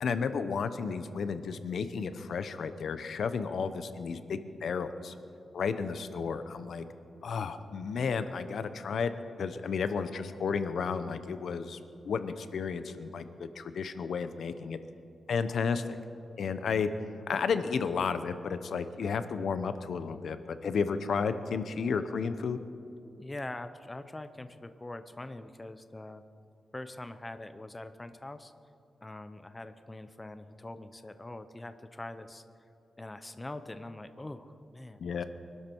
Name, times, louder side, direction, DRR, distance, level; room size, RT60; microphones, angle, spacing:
voice 1, 0.0-5.1 5.5-6.9 7.2-9.1 9.4-11.8 12.0-14.8 15.3-16.0 16.4-16.9 17.3-22.6 35.0-35.2, left 5 dB, 70° left, 11 dB, 0.8 m, -32 dB
voice 2, 23.2-26.2 26.7-28.5 29.0-32.4 33.0-35.0, left 2 dB, 15° left, 10 dB, 0.6 m, -43 dB
24.0 x 12.5 x 4.6 m, 2.6 s
wide cardioid pair, 135°, 0 cm